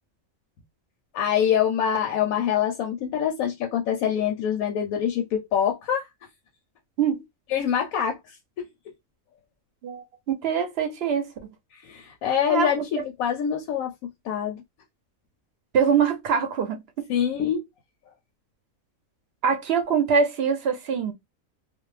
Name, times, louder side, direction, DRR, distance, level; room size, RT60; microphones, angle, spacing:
voice 1, 1.1-6.1 7.5-8.7 11.7-13.9 14.2-14.6 17.1-17.6, left 9 dB, 90° left, 1.0 m, -25 dB
voice 2, 9.8-11.5 12.5-12.7 15.7-16.8 19.4-21.1, right 6 dB, 60° right, 0.7 m, -23 dB
2.5 x 2.0 x 3.1 m
omnidirectional pair, 1.4 m